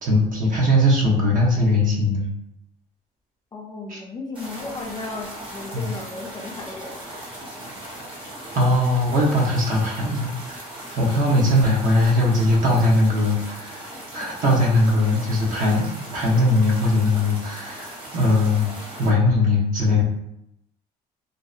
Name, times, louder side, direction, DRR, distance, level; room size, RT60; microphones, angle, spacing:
voice 1, 0.0-2.3 3.9-4.0 5.7-5.8 8.5-10.6 11.0-13.8 14.1-18.7 19.0-20.0, left 1 dB, 50° right, -2 dB, 0.8 m, -20 dB
voice 2, 3.5-7.2, left 3 dB, 25° left, -1 dB, 0.5 m, -35 dB
sound 1, 4.3-19.1, right 1 dB, 30° right, 1.0 m, -38 dB
2.7 x 2.0 x 2.4 m, 0.80 s
cardioid pair, 110°, 17 cm